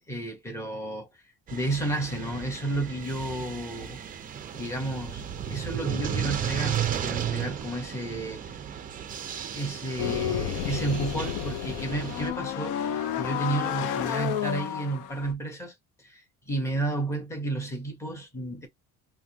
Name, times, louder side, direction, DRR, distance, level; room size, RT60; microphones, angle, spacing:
voice 1, 0.1-1.2 1.5-4.0 4.5-5.2 5.5-8.6 9.5-18.7, right 2 dB, 10° left, 1.1 m, -32 dB
sound 1, 1.5-12.3, right 9 dB, 25° right, 0.4 m, -34 dB
sound 2, 10.0-15.3, left 9 dB, 65° left, 0.6 m, -31 dB
3.5 x 2.2 x 2.8 m
cardioid pair, 175°, 33 cm